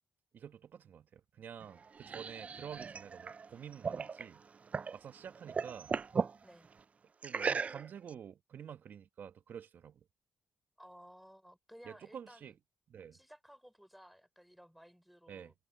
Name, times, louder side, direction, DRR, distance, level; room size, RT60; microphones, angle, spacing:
voice 1, 0.3-4.4 4.9-5.9 7.2-10.0 11.8-12.5 12.9-13.2 15.3-15.5, right 8 dB, 60° right, 1.3 m, -49 dB
sound 1, 1.6-5.0 5.3-6.4 7.2-8.1, right 5 dB, 40° right, 0.4 m, -37 dB
voice 2, 10.8-12.5 13.1-15.5, equal, ahead, 5.8 m, -57 dB
cardioid pair, 70°, 4 cm